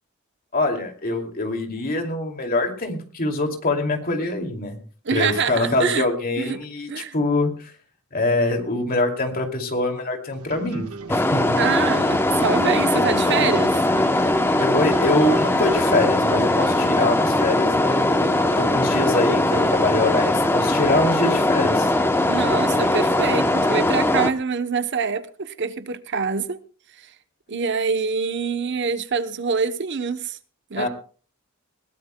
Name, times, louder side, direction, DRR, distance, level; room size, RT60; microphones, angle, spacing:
voice 1, 0.5-4.8 5.1-7.7 8.1-11.6 14.6-21.9 30.8-30.9, left 2 dB, 40° left, 2.5 m, -24 dB
voice 2, 5.0-6.0 6.4-6.6 6.9-7.1 11.6-13.8 22.3-26.6 27.0-27.1 27.5-30.4 30.7-30.9, right 5 dB, 50° right, 0.8 m, -25 dB
sound 1, 10.3-24.2, right 4 dB, 85° right, 1.4 m, -38 dB
sound 2, 11.1-24.3, left 1 dB, 10° left, 0.7 m, -20 dB
21.0 x 17.5 x 2.2 m
head